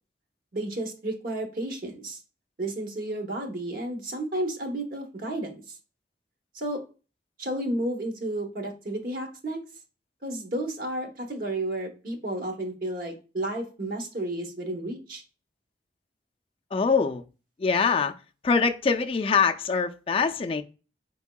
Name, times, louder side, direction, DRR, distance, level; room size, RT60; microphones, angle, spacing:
voice 1, 0.5-2.2 2.6-5.6 6.5-6.8 7.4-9.6 10.2-15.2, right 1 dB, 55° right, 3 dB, 1.0 m, -32 dB
voice 2, 16.7-17.2 17.6-18.1 18.4-20.6, left 5 dB, 30° left, 5 dB, 0.4 m, -23 dB
4.6 x 3.5 x 2.2 m, 0.33 s
head